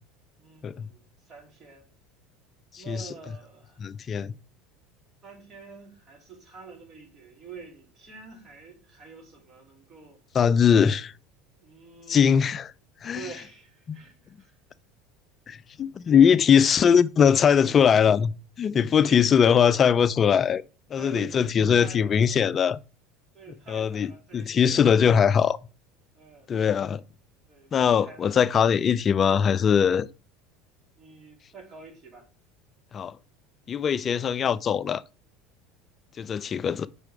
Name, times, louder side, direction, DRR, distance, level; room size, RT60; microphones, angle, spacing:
voice 1, 0.4-1.9 2.8-3.8 5.2-10.2 11.6-12.6 13.1-14.6 19.0-19.3 20.9-22.4 23.3-25.0 26.1-26.5 27.5-28.4 31.0-32.3, right 5 dB, 35° right, 2.8 m, -47 dB
voice 2, 2.7-3.1 3.8-4.4 10.3-11.1 12.1-12.7 13.0-13.2 13.9-14.0 15.5-18.3 18.6-20.6 20.9-22.8 23.7-25.6 26.5-27.0 27.7-30.1 32.9-33.2 33.7-35.0 36.2-36.9, left 7 dB, 35° left, 0.3 m, -21 dB
5.0 x 4.5 x 4.8 m
supercardioid pair, 100°, 0 cm